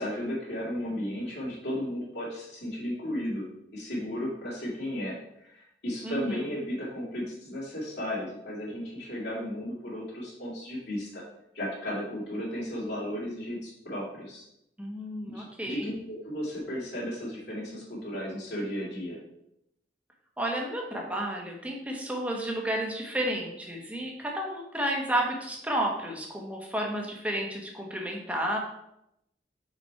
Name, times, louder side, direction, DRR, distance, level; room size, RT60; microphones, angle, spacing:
voice 1, 0.0-3.4 3.7-11.2 11.5-14.4 15.2-19.2, equal, 70° left, -6 dB, 2.3 m, -34 dB
voice 2, 6.0-6.4 14.8-15.9 20.4-28.6, right 1 dB, 10° right, 0 dB, 1.1 m, -31 dB
5.6 x 4.3 x 4.5 m, 0.82 s
head